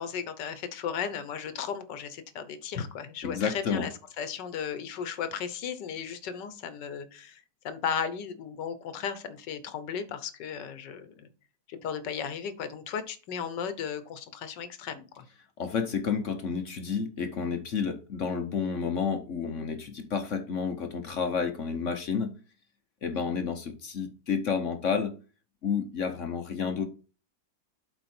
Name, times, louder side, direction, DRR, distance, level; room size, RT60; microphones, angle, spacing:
voice 1, 0.0-11.3 11.7-15.2 23.1-23.3, left 7 dB, 70° left, 1.5 m, -35 dB
voice 2, 3.2-3.9 15.6-22.3 23.0-25.1 25.6-26.8, left 6 dB, 50° left, 1.0 m, -30 dB
8.0 x 4.6 x 4.3 m
omnidirectional pair, 2.0 m